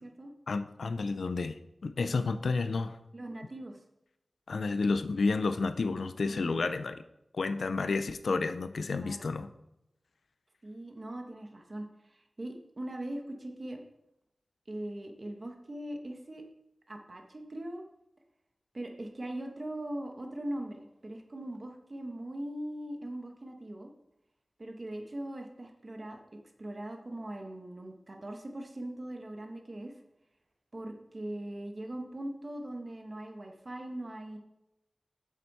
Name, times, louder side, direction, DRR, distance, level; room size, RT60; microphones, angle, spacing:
voice 1, 0.5-3.0 4.5-7.0 7.3-9.5, left 4 dB, 85° left, 10 dB, 0.6 m, -31 dB
voice 2, 3.1-3.8 6.3-6.6 8.9-9.3 10.6-13.8 14.7-16.4 16.9-17.8 18.7-23.9 24.6-26.2 26.6-29.9 30.7-34.4, right 1 dB, 40° right, 3 dB, 1.4 m, -40 dB
8.0 x 7.5 x 4.2 m, 0.86 s
wide cardioid pair, 90°, 0 cm